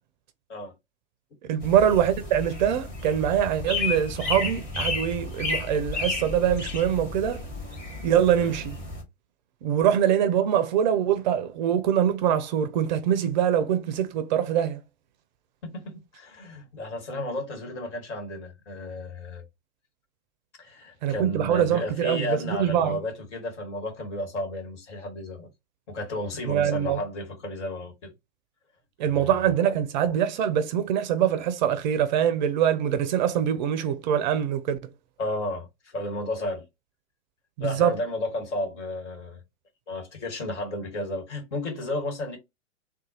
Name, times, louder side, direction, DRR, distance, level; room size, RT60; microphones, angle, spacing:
voice 1, 1.5-7.4 8.0-8.8 9.6-14.8 21.0-23.0 26.5-27.0 29.0-34.8 37.6-38.0, right 9 dB, 35° right, 0.4 m, -24 dB
sound 1, 1.6-9.0, left 3 dB, 20° left, 2.2 m, -32 dB
voice 2, 15.6-19.4 20.6-25.5 25.9-28.1 29.0-29.3 35.2-36.6 37.6-39.4 39.9-42.4, left 1 dB, 60° left, 1.5 m, -33 dB
3.9 x 2.2 x 2.8 m
figure-of-eight pair, 100°, 39 cm